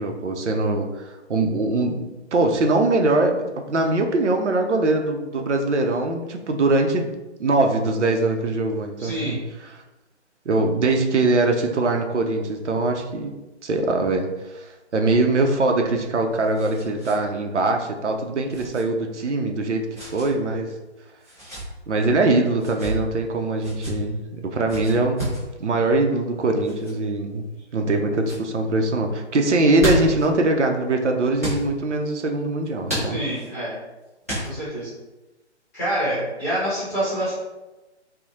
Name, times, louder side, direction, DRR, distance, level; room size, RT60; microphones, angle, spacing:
voice 1, 0.0-9.8 10.5-13.3 13.6-20.7 21.9-27.4 27.7-33.2, right 2 dB, 80° right, 3 dB, 0.5 m, -22 dB
voice 2, 9.0-9.4 33.0-33.7 34.4-34.9 35.7-37.3, right 1 dB, 15° left, -12 dB, 0.8 m, -26 dB
sound 1, 16.0-17.2 17.5-17.6 18.5-18.8 19.9-20.3 21.2-21.7 22.5-23.0 23.6-23.9 24.7-25.4 26.6-26.9 27.6-27.9 28.2-28.4 29.5-30.3 31.4-31.6 32.9-33.5 34.2-34.8, right 1 dB, 15° right, 0.5 m, -30 dB
2.7 x 2.0 x 2.8 m, 1.1 s
figure-of-eight pair, 140°, 35 cm